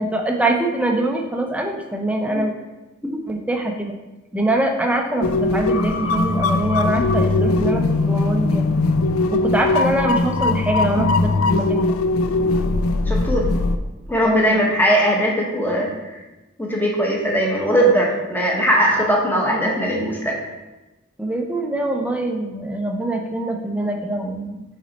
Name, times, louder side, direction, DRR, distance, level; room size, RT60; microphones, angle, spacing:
voice 1, 0.0-2.5 3.3-4.0 4.3-8.7 9.3-11.9 14.2-14.6 21.2-24.6, right 1 dB, 5° right, 2 dB, 0.5 m, -23 dB
sound 1, 5.2-13.8, left 3 dB, 80° left, 0.4 m, -20 dB
voice 2, 13.1-13.5 14.1-15.9 16.6-20.4, equal, 10° left, -2 dB, 0.9 m, -19 dB
6.2 x 4.0 x 4.0 m, 1.1 s
head